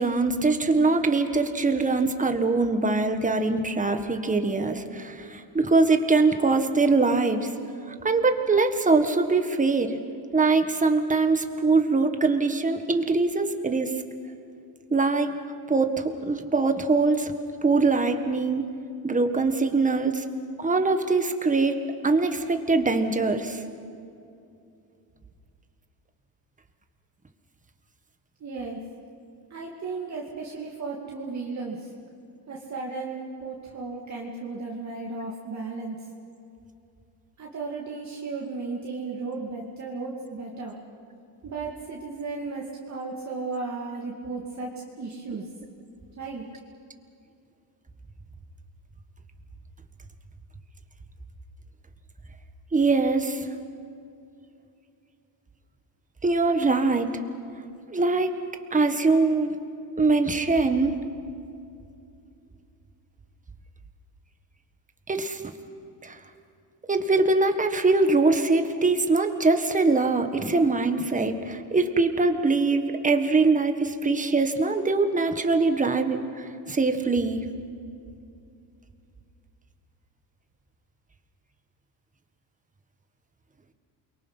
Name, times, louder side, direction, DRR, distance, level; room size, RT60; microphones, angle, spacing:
voice 1, 0.0-7.5 8.0-10.0 10.3-13.9 14.9-15.3 15.7-17.3 17.6-18.7 19.0-20.2 20.6-21.8 22.0-23.6 52.7-53.5 56.2-57.1 57.9-58.4 58.7-59.6 60.0-61.0 65.1-65.5 66.0-66.2 66.9-77.4, right 3 dB, 15° right, 7 dB, 1.6 m, -23 dB
voice 2, 28.4-28.8 29.5-31.9 32.5-36.0 37.4-40.8 41.4-45.5 46.2-46.4, right 3 dB, 35° right, -3 dB, 2.6 m, -35 dB
29.0 x 23.5 x 5.8 m, 2.6 s
cardioid pair, 115°, 45 cm